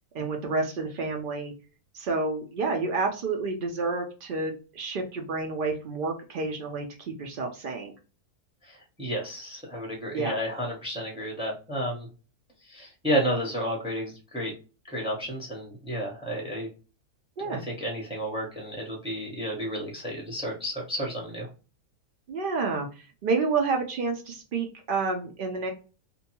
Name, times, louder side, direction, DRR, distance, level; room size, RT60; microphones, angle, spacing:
voice 1, 0.1-1.5 1.9-7.9 10.1-10.4 17.4-17.6 22.3-25.7, right 4 dB, 90° right, 3 dB, 0.4 m, -29 dB
voice 2, 8.6-12.1 12.6-14.5 14.9-16.7 17.4-21.5, equal, 5° right, -1 dB, 0.6 m, -31 dB
2.6 x 2.2 x 2.8 m, 0.34 s
omnidirectional pair, 1.6 m